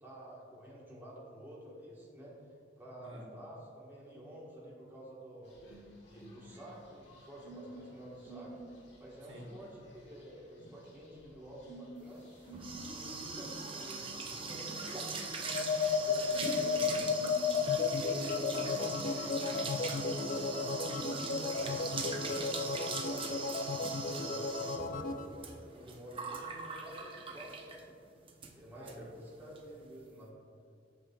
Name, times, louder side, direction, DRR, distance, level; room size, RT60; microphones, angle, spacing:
voice 1, 0.0-5.6 6.0-8.5 9.0-12.2 12.7-15.6 15.9-17.1 20.2-23.3 24.0-27.9 28.5-30.3, equal, 10° right, -6 dB, 1.4 m, -50 dB
sound 1, 5.4-22.2, right 1 dB, 70° left, 1.5 m, -53 dB
voice 2, 9.3-9.7 17.8-20.2 28.7-29.0, equal, 75° right, -2 dB, 1.1 m, -47 dB
sound 2, 12.1-27.9 28.3-28.5 28.9-29.0 29.2-29.6, right 4 dB, 30° right, 0.5 m, -41 dB
sound 3, 15.4-25.3, left 5 dB, 45° left, 0.3 m, -34 dB
8.3 x 6.3 x 2.3 m, 2.3 s
head